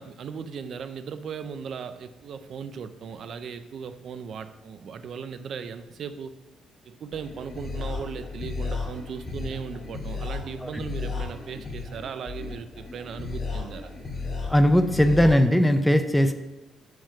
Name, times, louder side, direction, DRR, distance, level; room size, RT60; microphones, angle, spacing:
voice 1, 0.0-6.3 6.9-13.9, right 6 dB, 60° right, 11 dB, 0.5 m, -37 dB
sound 1, 7.1-15.3, left 4 dB, 40° left, 2.5 m, -34 dB
voice 2, 14.5-16.3, equal, 5° left, 8 dB, 0.5 m, -19 dB
7.6 x 3.6 x 5.6 m, 1.1 s
cardioid pair, 90°, 0 cm